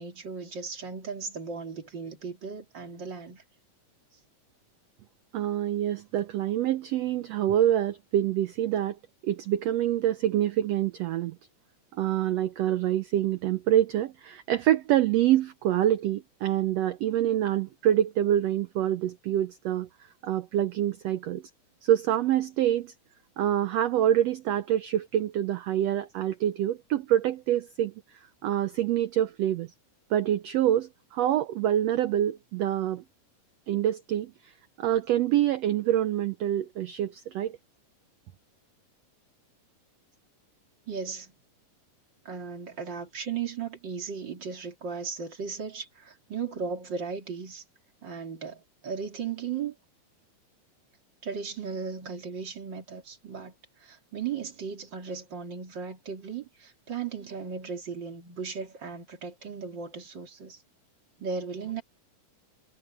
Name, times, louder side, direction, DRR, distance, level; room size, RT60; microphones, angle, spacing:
voice 1, 0.0-3.4 40.9-41.3 42.2-47.6 48.0-49.8 51.2-53.5 53.8-60.6 61.2-61.8, right 6 dB, 35° right, 3.1 m, -36 dB
voice 2, 5.3-9.0 9.2-11.4 12.0-19.9 20.2-21.4 21.8-22.9 23.4-27.9 28.4-29.7 30.1-33.0 33.7-34.3 34.8-37.6, right 11 dB, 85° right, 1.4 m, -26 dB
omnidirectional pair, 3.7 m